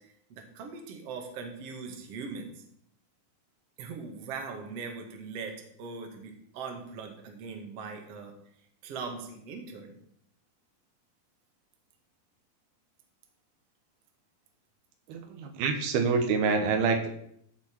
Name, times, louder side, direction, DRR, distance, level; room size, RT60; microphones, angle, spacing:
voice 1, 0.0-2.6 3.8-8.3 8.8-10.0, right 4 dB, 50° right, 3 dB, 2.3 m, -40 dB
voice 2, 15.1-17.1, right 5 dB, 85° right, 5 dB, 3.1 m, -26 dB
14.0 x 6.9 x 4.5 m, 0.71 s
omnidirectional pair, 4.4 m